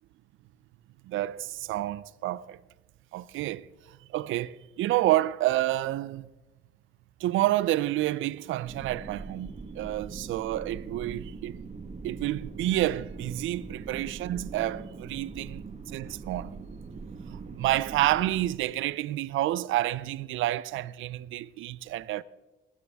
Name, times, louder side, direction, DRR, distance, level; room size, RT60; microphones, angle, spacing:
voice 1, 1.1-2.6 3.1-6.3 7.2-11.6 12.0-16.5 17.3-22.2, right 15 dB, 80° right, 0.5 m, -29 dB
sound 1, 8.6-18.5, right 4 dB, 35° right, 1.3 m, -42 dB
20.5 x 9.5 x 3.5 m
cardioid pair, 90°, 20 cm